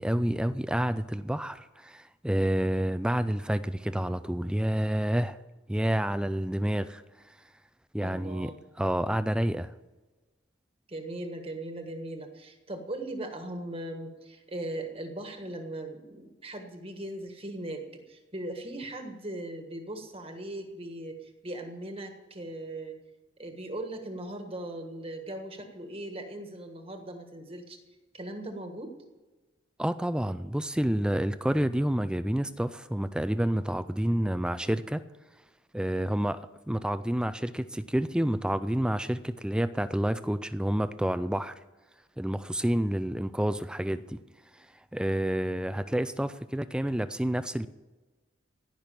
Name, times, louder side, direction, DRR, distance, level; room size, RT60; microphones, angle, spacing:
voice 1, 0.0-5.4 5.7-7.0 7.9-8.5 8.8-9.7 29.8-35.0 35.7-41.5 42.2-44.2 44.5-44.7 44.9-47.7, right 1 dB, 5° right, 0.3 m, -29 dB
voice 2, 8.0-8.6 10.9-23.0 23.4-27.8 28.1-28.9, right 1 dB, 30° right, 1.5 m, -39 dB
17.0 x 6.2 x 8.8 m
head